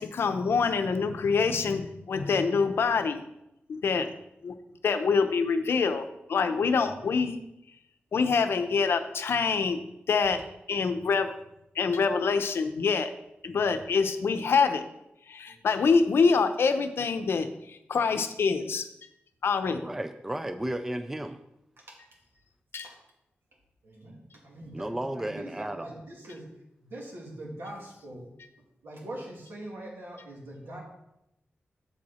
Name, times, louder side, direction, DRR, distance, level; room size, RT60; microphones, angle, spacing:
voice 1, 0.0-3.2 3.7-4.1 4.4-4.6 4.8-7.4 8.1-9.8 10.1-11.3 11.7-13.1 13.4-14.9 15.3-19.1 19.4-19.9 22.7-22.9, left 5 dB, 70° left, 9 dB, 0.6 m, -26 dB
voice 2, 19.8-21.4 24.7-25.9, right 1 dB, 10° right, 9 dB, 0.3 m, -33 dB
voice 3, 23.8-24.2 24.4-26.5 26.8-28.3 28.8-30.8, right 1 dB, 75° right, -2 dB, 2.5 m, -43 dB
7.6 x 7.0 x 4.3 m, 0.86 s
wide cardioid pair, 145°, 4 cm